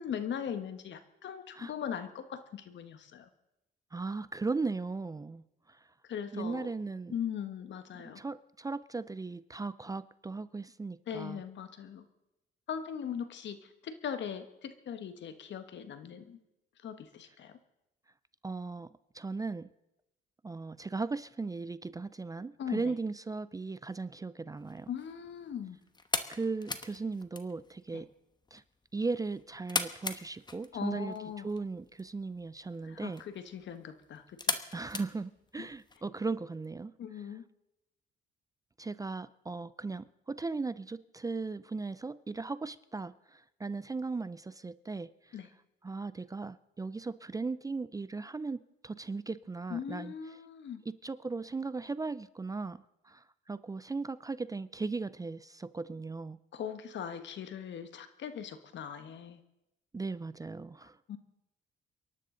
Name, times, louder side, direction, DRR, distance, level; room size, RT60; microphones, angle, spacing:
voice 1, 0.0-3.3 6.0-6.7 7.1-8.2 11.1-12.0 12.7-16.4 16.8-17.6 22.6-22.9 24.9-25.8 27.9-28.0 30.7-31.4 32.8-34.6 35.6-35.7 37.0-37.4 45.3-45.5 49.7-50.8 56.5-59.4 60.8-61.2, left 8 dB, 65° left, 1.4 m, -40 dB
voice 2, 3.9-5.4 5.7-5.8 6.3-7.1 8.2-11.4 18.4-18.9 19.1-19.7 20.4-24.9 26.3-28.1 28.5-28.6 28.9-31.1 31.4-33.2 34.7-36.9 38.8-45.4 45.8-50.1 51.0-56.4 59.9-61.0, right 3 dB, 20° right, 0.4 m, -37 dB
sound 1, 24.6-36.0, left 3 dB, 20° left, 1.1 m, -41 dB
29.0 x 11.5 x 3.9 m
cardioid pair, 90°, 20 cm